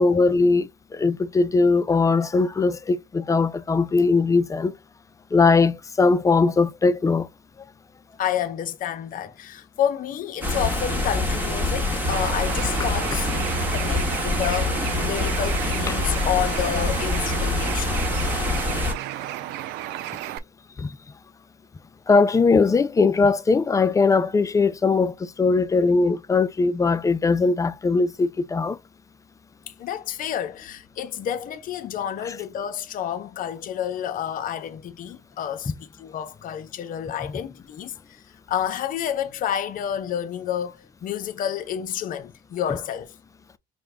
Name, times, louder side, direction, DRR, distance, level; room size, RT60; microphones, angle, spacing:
voice 1, 0.0-4.7 5.3-7.3 20.8-20.9 22.1-28.8 32.3-32.4 37.2-37.3, left 4 dB, 20° left, 0.3 m, -20 dB
voice 2, 8.2-17.9 29.8-35.7 36.0-38.2 38.5-43.1, left 10 dB, 55° left, 0.6 m, -29 dB
sound 1, 10.4-18.9, left 2 dB, 10° right, 1.1 m, -25 dB
Bird, 12.1-20.4, right 13 dB, 85° right, 0.4 m, -33 dB
5.1 x 2.2 x 3.3 m
cardioid pair, 110°, 17 cm